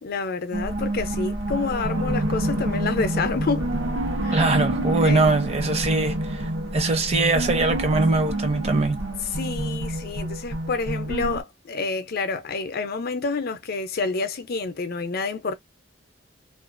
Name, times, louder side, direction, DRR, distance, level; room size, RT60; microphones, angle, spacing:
voice 1, 0.0-3.7 4.2-4.6 5.0-5.3 9.3-15.5, left 4 dB, 55° left, 0.5 m, -28 dB
sound 1, 0.5-11.4, right 1 dB, 85° right, 0.9 m, -28 dB
voice 2, 4.3-9.0, right 3 dB, 35° right, 0.6 m, -22 dB
2.4 x 2.3 x 2.5 m
head